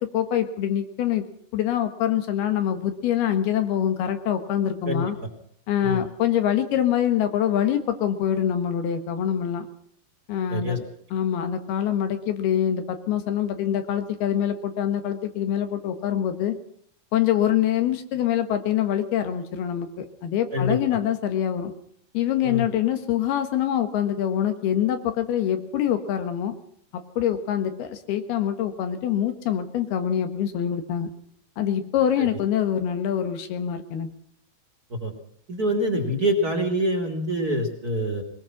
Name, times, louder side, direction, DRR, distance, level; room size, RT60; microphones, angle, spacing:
voice 1, 0.1-1.3 1.5-5.2 5.7-9.7 10.3-10.9 11.1-16.6 17.1-21.7 22.1-26.6 26.9-31.1 31.6-34.1, left 10 dB, 85° left, 8 dB, 3.6 m, -25 dB
voice 2, 20.5-21.0 22.4-22.7 32.2-32.3 34.9-35.1 35.5-38.2, equal, 25° right, 6 dB, 2.7 m, -25 dB
21.5 x 20.0 x 6.0 m, 0.66 s
omnidirectional pair, 4.4 m